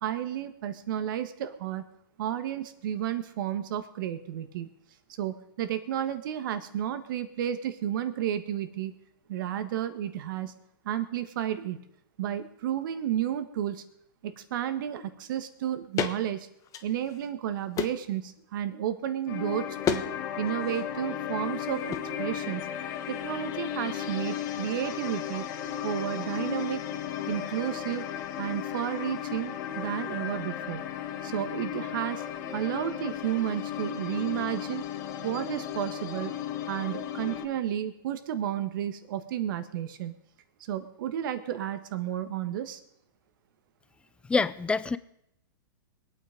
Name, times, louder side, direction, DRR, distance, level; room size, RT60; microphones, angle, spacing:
voice 1, 0.0-1.9 2.2-4.7 5.2-8.9 9.3-10.5 10.8-11.8 12.2-13.8 14.2-16.5 16.8-20.0 20.4-22.7 23.1-25.5 25.8-26.8 27.3-28.1 28.4-30.8 31.2-34.8 35.2-36.3 36.7-40.1 40.7-42.8, right 11 dB, 60° right, 11 dB, 1.6 m, -32 dB
sound 1, 16.0-16.2 16.6-17.3 17.7-18.1 19.8-20.1 20.4-20.8 21.9-22.1, left 9 dB, 30° left, 1.2 m, -31 dB
sound 2, 19.3-37.4, left 10 dB, 50° left, 1.7 m, -35 dB
voice 2, 44.3-45.0, left 4 dB, 10° left, 15 dB, 0.5 m, -26 dB
22.5 x 8.8 x 5.2 m, 0.77 s
hypercardioid pair, 130°, 12 cm